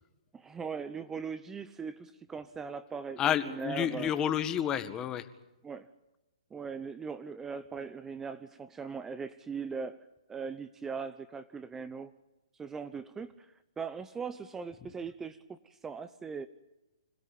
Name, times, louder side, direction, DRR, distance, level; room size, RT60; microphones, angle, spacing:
voice 1, 0.3-4.1 5.6-5.9 6.5-10.0 10.3-12.1 12.5-16.5, right 5 dB, 10° right, 12 dB, 0.9 m, -40 dB
voice 2, 3.2-5.3, left 10 dB, 20° left, 12 dB, 1.8 m, -30 dB
26.5 x 16.5 x 8.7 m, 0.98 s
hypercardioid pair, 130°, 3 cm